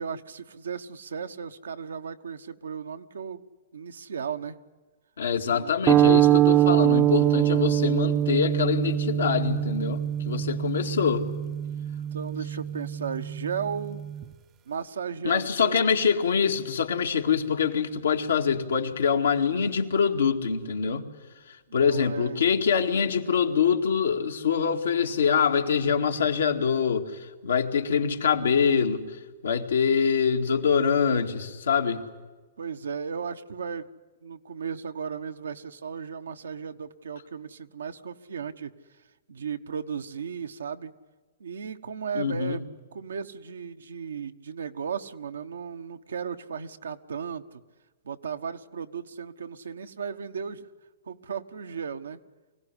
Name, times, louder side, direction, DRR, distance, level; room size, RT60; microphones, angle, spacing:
voice 1, 0.0-3.4 3.7-4.6 5.4-5.8 12.1-14.0 14.7-15.9 21.7-22.5 32.6-33.9 34.2-38.7 39.3-40.9 41.4-47.6 48.0-50.6 51.0-52.2, right 6 dB, 85° right, 8 dB, 1.2 m, -35 dB
voice 2, 5.2-11.3 15.2-21.0 21.5-32.1 42.1-42.6, left 6 dB, 85° left, 3 dB, 2.2 m, -25 dB
sound 1, 5.9-14.2, right 12 dB, 30° right, 0.7 m, -24 dB
24.0 x 17.0 x 9.9 m, 1.3 s
hypercardioid pair, 130°, 0 cm